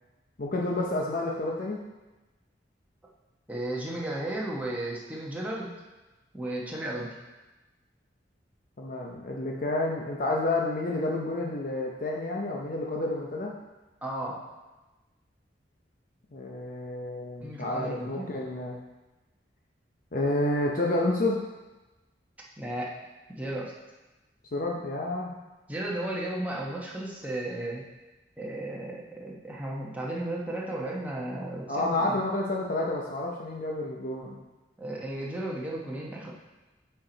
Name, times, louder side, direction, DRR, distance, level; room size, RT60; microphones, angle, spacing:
voice 1, 0.4-1.8 8.8-13.5 16.3-18.8 20.1-21.4 24.5-25.3 31.7-34.4, left 2 dB, 50° left, -2 dB, 0.7 m, -29 dB
voice 2, 3.5-5.7 6.3-7.2 14.0-14.4 17.4-18.3 22.6-22.9 23.3-23.7 25.7-27.8 28.4-32.2 34.8-36.3, right 1 dB, 10° right, -4 dB, 1.0 m, -34 dB
7.5 x 4.6 x 3.9 m, 1.1 s
head